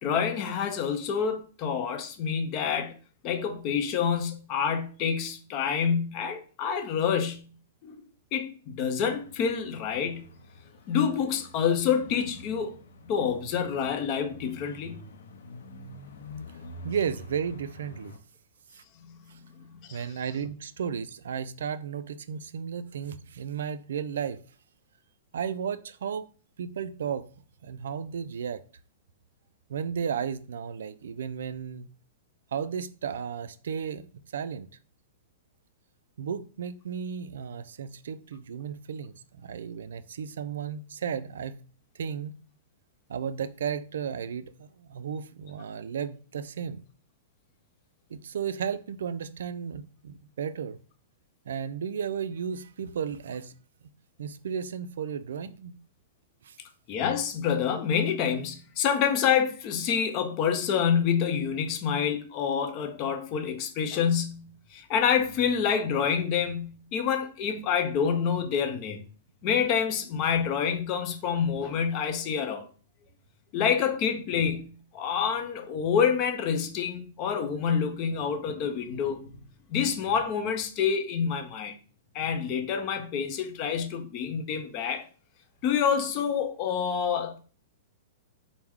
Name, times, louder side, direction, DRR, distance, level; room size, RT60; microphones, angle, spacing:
voice 1, 0.0-2.9 3.2-7.5 7.8-8.0 8.3-10.3 10.9-12.7 13.1-15.1 19.0-19.2 19.6-20.0 56.9-69.0 69.4-72.7 73.5-79.2 79.7-81.7 82.1-85.1 85.6-87.4, left 7 dB, 35° left, 0.6 m, -27 dB
sound 1, 9.0-18.2, left 1 dB, 80° left, 0.6 m, -47 dB
voice 2, 16.8-18.1 18.7-18.8 19.3-19.4 19.9-24.4 25.3-26.3 26.6-27.2 27.6-28.6 29.7-31.9 32.5-34.1 34.3-34.7 36.2-41.6 41.9-42.4 43.1-46.8 48.1-50.8 51.5-53.5 54.2-55.8 56.4-56.6, right 7 dB, 80° right, 0.3 m, -34 dB
4.5 x 2.1 x 3.6 m
hypercardioid pair, 145°, 0 cm